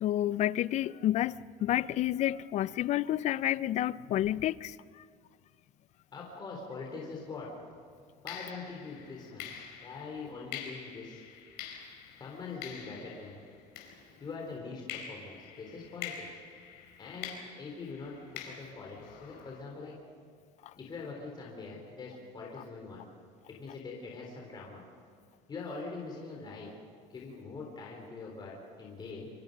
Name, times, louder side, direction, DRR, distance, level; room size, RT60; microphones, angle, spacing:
voice 1, 0.0-4.8, left 13 dB, 40° left, 0.5 m, -29 dB
voice 2, 6.1-7.5 8.2-11.2 12.2-13.4 14.2-16.3 17.0-18.2 18.5-19.9 20.7-23.1 23.5-24.8 25.5-26.7 27.1-29.3, left 4 dB, 25° left, 3.6 m, -43 dB
sound 1, 7.1-7.3 8.3-14.4 14.9-19.6, left 8 dB, 70° left, 4.8 m, -46 dB
27.5 x 24.0 x 5.3 m
cardioid pair, 140°, 17 cm